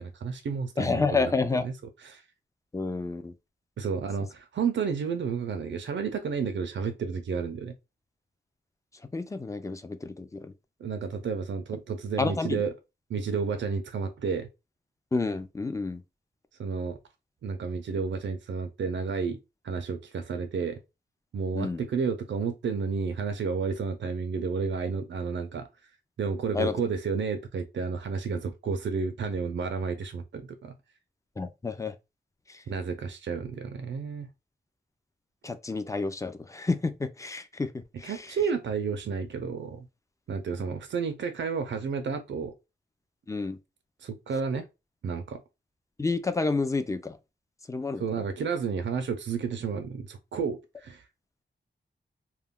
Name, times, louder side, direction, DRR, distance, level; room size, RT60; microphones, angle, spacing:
voice 1, 0.0-1.3 1.6-1.7 2.0-2.2 3.8-7.7 10.8-12.7 13.1-14.5 16.6-17.0 17.4-19.4 19.6-20.8 21.3-25.7 26.2-30.8 32.7-34.3 38.0-39.9 40.3-42.5 44.0-44.7 45.0-45.4 48.0-51.0, right 5 dB, 80° right, 0.4 m, -31 dB
voice 2, 0.8-1.7 2.7-3.3 9.1-10.5 12.2-12.6 15.1-16.0 21.5-21.8 26.5-26.7 31.4-31.9 32.5-32.6 35.4-38.4 43.3-43.6 46.0-47.2 47.7-48.0, left 3 dB, 15° left, 0.4 m, -29 dB
2.2 x 2.2 x 3.5 m
wide cardioid pair, 90°, 19 cm